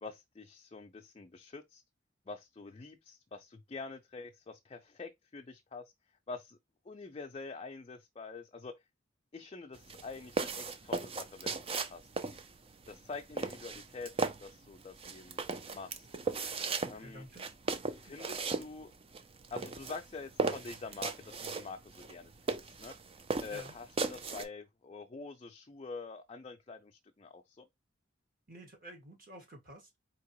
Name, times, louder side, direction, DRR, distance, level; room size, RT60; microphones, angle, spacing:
voice 1, 0.0-1.8 2.3-5.9 6.3-6.6 6.9-8.8 9.3-12.4 12.9-14.1 14.4-15.4 15.7-16.1 16.9-17.3 17.9-18.9 19.5-22.9 23.4-27.7, left 4 dB, 30° left, 0.4 m, -46 dB
sound 1, 9.7-24.4, right 4 dB, 30° right, 0.5 m, -37 dB
voice 2, 16.9-17.5 23.5-23.8 28.5-30.0, right 1 dB, 50° right, 1.9 m, -51 dB
4.6 x 2.9 x 3.0 m
head